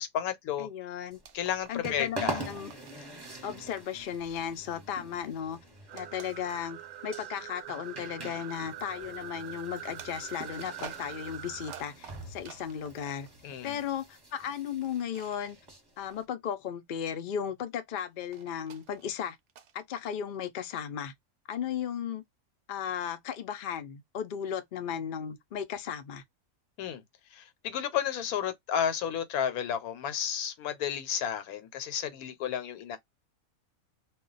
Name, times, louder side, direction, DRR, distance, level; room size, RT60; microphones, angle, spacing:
voice 1, 0.0-0.7 1.3-2.4 13.4-13.8 26.8-27.0 27.3-33.0, left 9 dB, 90° left, 1.2 m, -32 dB
voice 2, 0.6-1.2 1.7-2.7 3.4-5.6 5.9-13.3 13.6-15.6 16.0-19.4 19.7-21.1 21.5-22.2 22.7-26.2, left 8 dB, 60° left, 0.5 m, -35 dB
sound 1, 1.1-16.2, right 2 dB, 20° right, 0.9 m, -44 dB
sound 2, 1.1-1.9 2.1-3.1 3.6-5.1 5.9-7.0 7.6-7.8 10.0-13.3 14.8-15.4 18.0-19.8, right 8 dB, 65° right, 0.8 m, -50 dB
sound 3, 5.9-11.8, right 12 dB, 85° right, 1.1 m, -44 dB
2.3 x 2.2 x 3.8 m
omnidirectional pair, 1.5 m